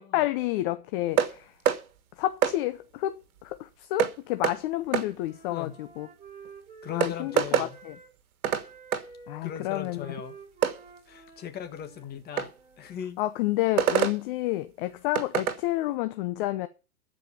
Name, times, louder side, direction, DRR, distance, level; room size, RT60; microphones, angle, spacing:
voice 1, 0.0-1.5 2.2-6.1 6.9-8.0 9.3-10.1 13.2-16.7, left 16 dB, 35° left, 0.8 m, -30 dB
sound 1, 1.2-1.3 1.7-1.8 2.4-2.6 4.0-4.1 4.4-4.6 4.9-5.1 6.4-6.5 7.0-7.7 8.4-8.7 8.9-9.0 10.6-10.8 12.4-12.5 13.8-14.2 15.1-15.6, right 9 dB, 70° right, 1.7 m, -24 dB
Wind instrument woodwind instrument, 4.3-8.1 8.4-13.0, right 4 dB, 15° right, 5.8 m, -50 dB
voice 2, 6.8-7.8 9.4-10.4 11.1-13.2, left 9 dB, 20° left, 1.6 m, -39 dB
13.5 x 5.2 x 8.4 m
hypercardioid pair, 130°, 44 cm